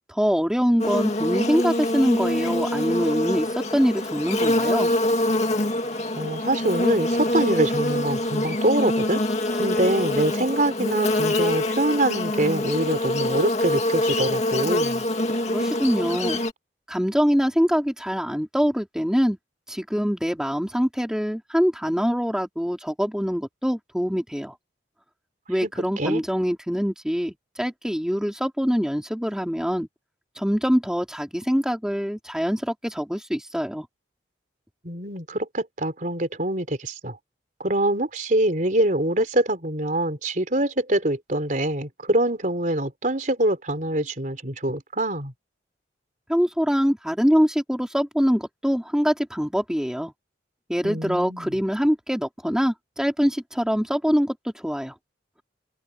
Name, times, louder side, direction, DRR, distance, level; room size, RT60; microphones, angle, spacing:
voice 1, 0.1-4.9 15.5-16.4 16.9-19.4 19.7-24.6 25.5-29.9 30.4-33.9 46.3-50.1 50.7-54.9, equal, 5° right, 3.3 m, -24 dB
Buzz, 0.8-16.5, left 1 dB, 35° left, 2.1 m, -25 dB
voice 2, 6.2-9.2 9.5-15.0 25.6-25.7 26.0-26.2 34.8-37.2 37.6-45.3 50.8-51.5, right 1 dB, 45° right, 4.1 m, -24 dB
open air
head